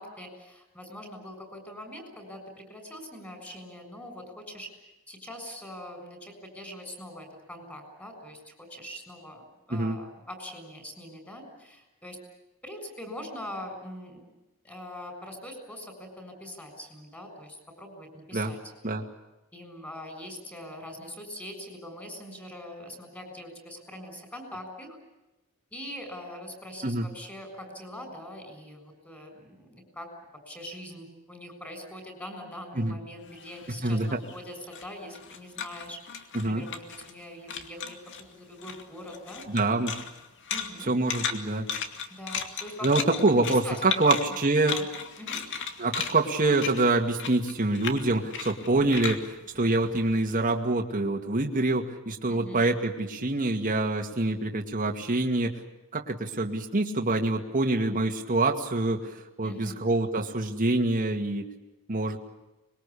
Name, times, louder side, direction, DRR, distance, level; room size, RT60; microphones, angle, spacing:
voice 1, 0.0-12.2 12.6-14.3 14.6-18.6 19.5-25.0 25.7-30.1 30.5-38.0 38.3-39.4 40.5-40.9 42.1-43.4 43.6-43.8 44.0-44.1 44.7-44.9 45.2-45.4 52.3-52.6 59.4-59.8, left 1 dB, 10° left, 5 dB, 6.9 m, -43 dB
sound 1, 33.3-37.2 37.5-38.3 38.6-50.4, left 6 dB, 55° left, 2.4 m, -36 dB
voice 2, 39.5-40.0 40.9-41.7 42.8-44.8 45.8-55.5 55.9-61.4 61.9-62.2, right 2 dB, 40° right, 2 dB, 2.3 m, -26 dB
25.5 x 22.0 x 8.6 m, 0.98 s
head